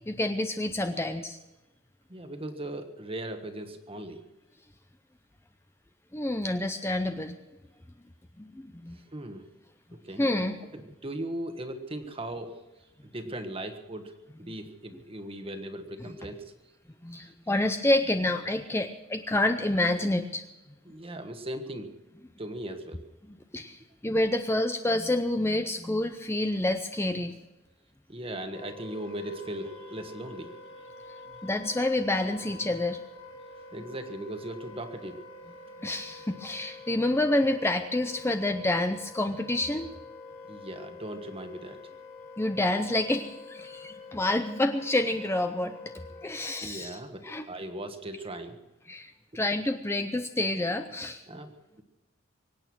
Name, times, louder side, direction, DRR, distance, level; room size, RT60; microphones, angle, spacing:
voice 1, 0.1-1.4 6.1-7.4 8.4-9.0 10.2-10.6 17.0-20.4 23.5-27.3 31.4-33.0 35.8-39.9 42.4-45.8 46.2-46.9 47.3-47.4 48.9-51.2, left 1 dB, 10° left, 7 dB, 0.6 m, -28 dB
voice 2, 2.1-4.2 8.9-9.5 9.9-10.2 10.7-12.6 13.0-14.2 14.5-16.4 17.1-17.3 20.8-21.9 22.4-23.0 28.1-30.5 33.7-35.2 40.5-41.8 46.6-48.6 51.3-51.8, right 1 dB, 30° right, 7 dB, 1.4 m, -38 dB
Wind instrument woodwind instrument, 28.5-46.7, left 3 dB, 35° left, 2.4 m, -47 dB
23.5 x 9.1 x 6.1 m, 1.0 s
head